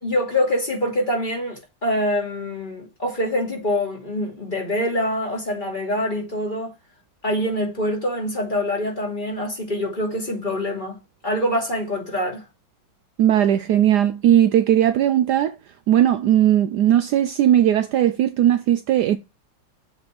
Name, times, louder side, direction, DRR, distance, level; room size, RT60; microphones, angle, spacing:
voice 1, 0.0-6.7 7.2-11.0 11.2-12.4, left 1 dB, 25° left, 2.6 m, -25 dB
voice 2, 13.2-15.6 15.9-19.2, right 11 dB, 75° right, 1.0 m, -18 dB
7.6 x 4.3 x 4.6 m
omnidirectional pair, 2.1 m